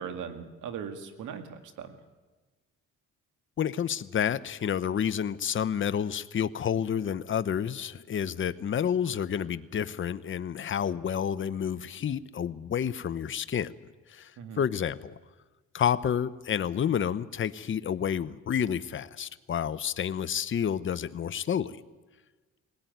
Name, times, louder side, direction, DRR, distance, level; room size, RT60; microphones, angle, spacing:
voice 1, 0.0-2.0 14.4-14.6, right 7 dB, 85° right, 8 dB, 2.1 m, -39 dB
voice 2, 3.6-13.7 14.1-14.3 14.6-15.1 15.7-21.8, left 8 dB, 40° left, 14 dB, 0.8 m, -29 dB
19.5 x 17.0 x 9.3 m, 1.3 s
cardioid pair, 90°, 30 cm